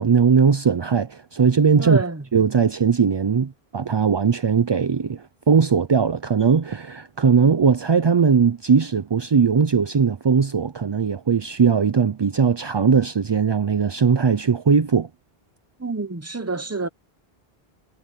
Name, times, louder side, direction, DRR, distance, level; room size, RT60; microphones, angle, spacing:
voice 1, 0.0-2.0 2.3-15.1, right 6 dB, 40° right, 0.4 m, -19 dB
voice 2, 1.8-2.2 15.8-16.9, right 3 dB, 15° right, 0.8 m, -27 dB
omnidirectional pair, 1.0 m